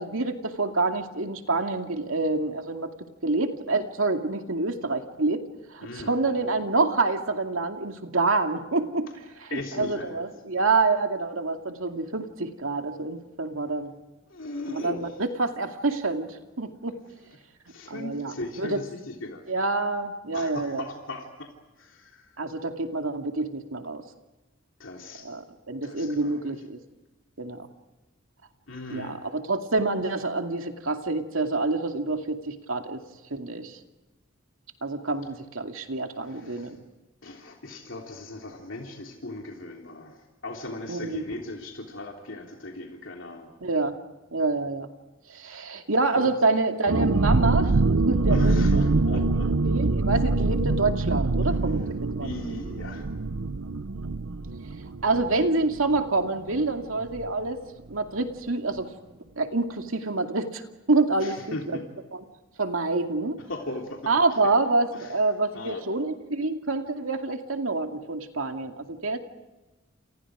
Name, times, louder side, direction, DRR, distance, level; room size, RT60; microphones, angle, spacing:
voice 1, 0.0-2.9 3.2-5.5 5.7-9.1 9.5-13.9 14.7-15.1 15.4-17.0 17.9-18.8 19.5-20.8 22.4-24.0 25.2-26.8 27.4-27.7 28.9-33.0 33.3-33.8 34.8-36.8 40.9-41.2 43.6-44.0 44.3-44.9 45.3-49.2 49.6-52.3 55.0-57.6 57.9-58.9 59.4-60.6 60.9-61.6 62.6-63.4 64.1-69.2, right 3 dB, 90° right, 5 dB, 2.4 m, -27 dB
voice 2, 5.8-6.7 9.5-10.2 14.3-15.3 17.7-19.4 20.3-22.4 24.8-25.3 25.8-26.4 28.7-29.2 36.2-36.8 37.2-43.5 45.4-45.7 46.1-46.3 48.3-49.5 51.4-51.5 52.2-53.1 61.2-61.8 63.5-64.1 64.9-65.2 65.5-65.8, left 2 dB, 65° left, 1 dB, 3.4 m, -38 dB
sound 1, 46.9-56.3 56.5-56.6 57.0-57.3, right 3 dB, 75° right, 0.7 m, -24 dB
29.5 x 28.5 x 5.0 m, 1.1 s
head